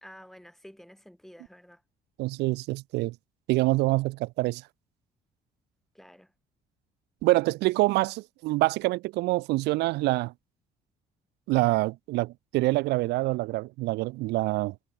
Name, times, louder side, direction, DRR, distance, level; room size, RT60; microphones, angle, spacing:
voice 1, 0.0-1.8 6.0-6.3, equal, ahead, 1.8 m, -50 dB
voice 2, 2.2-3.1 3.5-4.6 7.2-10.3 11.5-14.7, right 20 dB, 85° right, 0.8 m, -26 dB
cardioid pair, 110°, 17 cm